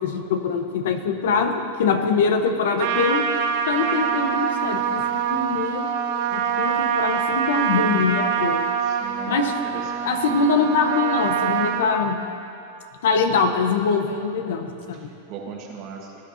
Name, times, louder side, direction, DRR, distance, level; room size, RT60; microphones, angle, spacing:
voice 1, 0.0-3.2 3.7-5.0 5.3-5.9 6.3-8.6 9.3-9.5 10.0-12.2 13.0-15.0, left 5 dB, 80° left, 6 dB, 1.0 m, -23 dB
Trumpet, 2.8-11.9, right 7 dB, 60° right, 1.0 m, -24 dB
voice 2, 8.8-10.3 14.9-16.2, right 6 dB, 45° right, 0 dB, 1.6 m, -39 dB
18.5 x 9.6 x 2.8 m, 2.7 s
supercardioid pair, 140°, 0 cm